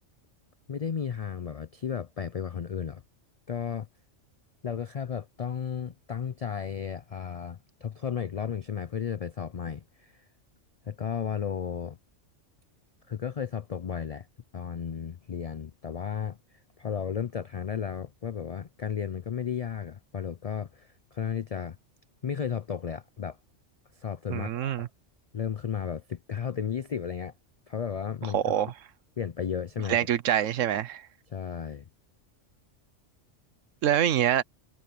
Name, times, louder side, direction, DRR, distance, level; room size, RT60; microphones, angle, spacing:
voice 1, 0.7-3.0 3.5-3.9 4.6-10.2 10.9-12.0 13.1-14.3 14.5-16.4 16.8-21.8 22.2-23.4 23.9-24.9 25.3-27.3 27.7-28.7 29.2-30.1 31.3-31.8, left 7 dB, 65° left, 0.3 m, -34 dB
voice 2, 24.3-24.9 28.3-28.7 29.9-31.0 33.8-34.4, right 10 dB, 90° right, 1.1 m, -25 dB
omnidirectional pair, 1.3 m